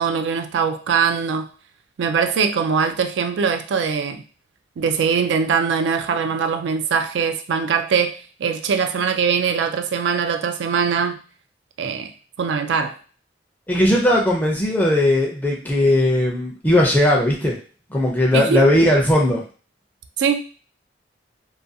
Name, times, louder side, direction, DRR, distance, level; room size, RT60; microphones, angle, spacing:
voice 1, 0.0-1.5 2.0-4.2 4.8-11.2 11.8-12.1 12.4-13.0 18.3-18.7 20.2-20.4, right 6 dB, 75° right, 7 dB, 0.3 m, -21 dB
voice 2, 13.7-17.6 17.9-19.4, left 1 dB, 10° left, -2 dB, 0.4 m, -18 dB
2.4 x 2.2 x 2.6 m, 0.39 s
head